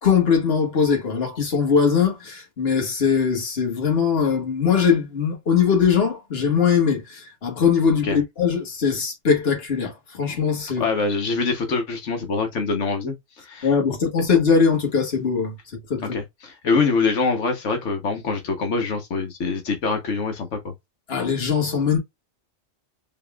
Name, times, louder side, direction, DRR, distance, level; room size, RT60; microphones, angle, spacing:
voice 1, 0.0-10.9 13.6-15.6 15.9-16.2 21.1-22.0, left 6 dB, 60° left, 1.6 m, -21 dB
voice 2, 10.8-13.7 16.0-20.7, left 4 dB, 90° left, 1.3 m, -24 dB
4.0 x 3.5 x 2.3 m
omnidirectional pair, 1.2 m